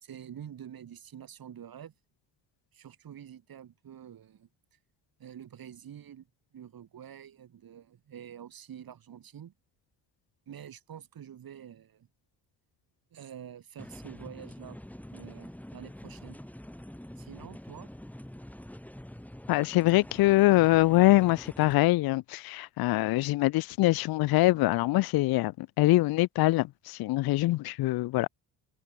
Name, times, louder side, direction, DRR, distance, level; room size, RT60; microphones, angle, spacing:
voice 1, 0.0-1.9 2.7-4.5 5.2-6.3 6.5-9.5 10.5-12.1 13.1-14.8 15.1-16.4 17.2-17.9, right 9 dB, 55° right, 3.4 m, -47 dB
sound 1, 13.8-21.8, left 1 dB, 5° left, 4.0 m, -46 dB
voice 2, 19.5-28.3, left 18 dB, 60° left, 0.5 m, -24 dB
supercardioid pair, 70°, 42 cm